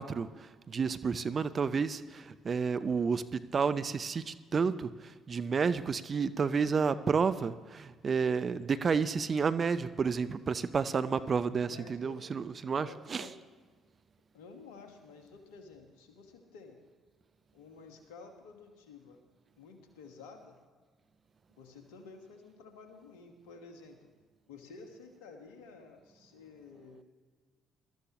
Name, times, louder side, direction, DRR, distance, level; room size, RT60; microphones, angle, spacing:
voice 1, 0.0-13.3, right 5 dB, 40° right, 13 dB, 0.6 m, -31 dB
voice 2, 11.0-11.3 11.7-12.2 12.8-13.3 14.3-16.8 17.5-19.2 19.6-20.6 21.6-24.0 24.5-27.0, left 4 dB, 75° left, 5 dB, 1.6 m, -52 dB
20.5 x 13.0 x 3.1 m, 1.5 s
hypercardioid pair, 50°, 0 cm